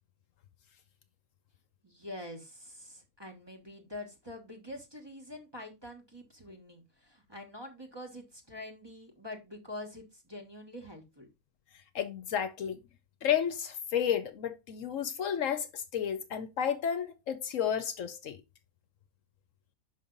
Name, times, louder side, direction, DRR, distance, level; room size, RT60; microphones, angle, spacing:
voice 1, 1.8-11.3, left 1 dB, 20° right, 1.3 m, -45 dB
voice 2, 11.9-12.8 13.2-18.4, left 9 dB, 70° left, 1.0 m, -32 dB
5.8 x 5.4 x 3.9 m
omnidirectional pair, 1.5 m